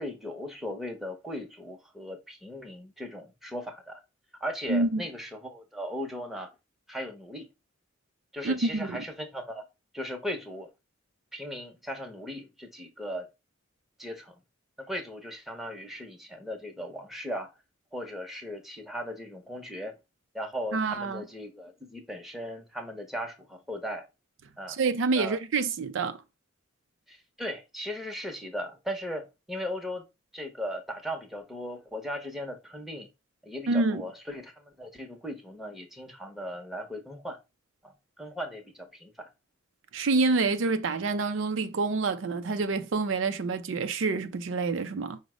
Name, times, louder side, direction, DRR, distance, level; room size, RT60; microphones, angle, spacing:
voice 1, 0.0-4.0 4.4-6.5 6.9-7.5 8.3-9.6 9.9-10.7 11.3-13.3 14.0-14.3 14.8-17.5 17.9-19.9 20.3-24.1 24.6-24.8 25.1-25.4 27.1-30.0 30.3-33.1 33.4-37.4 37.8-37.9 38.2-39.3, equal, ahead, 0.7 m, -37 dB
voice 2, 4.7-5.0 8.4-9.0 20.7-21.2 24.7-26.2 33.7-34.0 39.9-45.2, right 3 dB, 75° right, 0.4 m, -27 dB
5.1 x 2.1 x 4.8 m
head